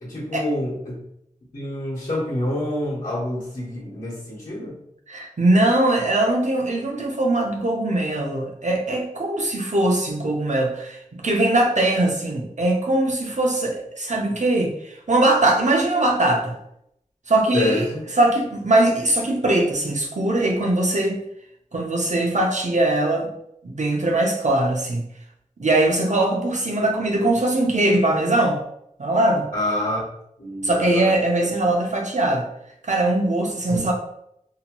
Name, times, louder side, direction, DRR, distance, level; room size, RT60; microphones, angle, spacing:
voice 1, 0.0-1.0 1.5-4.8 17.5-18.0 29.5-30.0 30.4-31.1 31.4-31.5 33.7-33.8, left 1 dB, 70° left, -10 dB, 1.0 m, -27 dB
voice 2, 5.1-16.5 17.3-17.9 18.2-21.2 21.7-23.3 23.6-25.0 25.6-28.6 29.0-29.5 30.6-32.5 32.8-33.9, right 1 dB, 60° right, 1 dB, 0.6 m, -21 dB
2.7 x 2.2 x 2.9 m, 0.75 s
wide cardioid pair, 55°, 14 cm